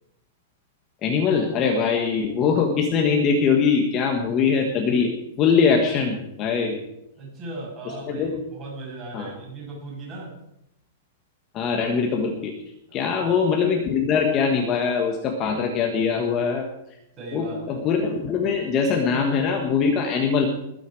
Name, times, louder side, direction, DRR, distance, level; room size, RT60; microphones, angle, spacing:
voice 1, 1.0-5.1 5.4-6.8 8.1-8.3 9.1-9.3 11.5-12.5 12.9-16.6 17.3-20.5, left 5 dB, 20° left, 2 dB, 1.5 m, -22 dB
voice 2, 7.2-10.3 12.9-13.4 17.2-17.8, right 2 dB, 20° right, -3 dB, 6.7 m, -37 dB
21.5 x 9.3 x 4.9 m, 0.81 s
supercardioid pair, 175°, 0 cm